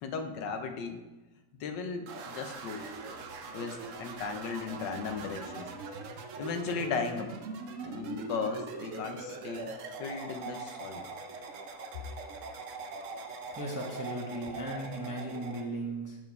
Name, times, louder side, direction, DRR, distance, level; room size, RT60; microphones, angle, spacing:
voice 1, 0.0-1.0 1.6-2.8 3.5-5.7 6.4-7.3 7.8-9.7 10.0-11.0, left 5 dB, 90° left, 7 dB, 1.4 m, -36 dB
sound 1, 2.1-15.7, right 4 dB, 65° right, 0.8 m, -42 dB
voice 2, 13.5-16.2, right 1 dB, 15° right, -2 dB, 0.6 m, -37 dB
7.5 x 4.7 x 4.6 m, 1.1 s
omnidirectional pair, 1.9 m